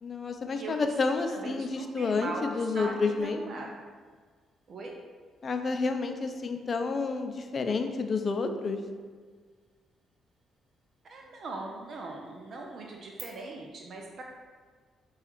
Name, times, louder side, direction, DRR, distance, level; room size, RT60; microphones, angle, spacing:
voice 1, 0.0-3.4 5.4-8.8, left 4 dB, 45° left, 6 dB, 0.4 m, -30 dB
voice 2, 0.5-0.9 1.3-2.5 2.7-3.7 4.7-5.0 11.0-14.2, right 3 dB, 60° right, 0 dB, 0.5 m, -40 dB
sound 1, 3.2-13.2, right 6 dB, 80° right, 1.0 m, -60 dB
4.7 x 2.4 x 4.3 m, 1.6 s
supercardioid pair, 65°, 0 cm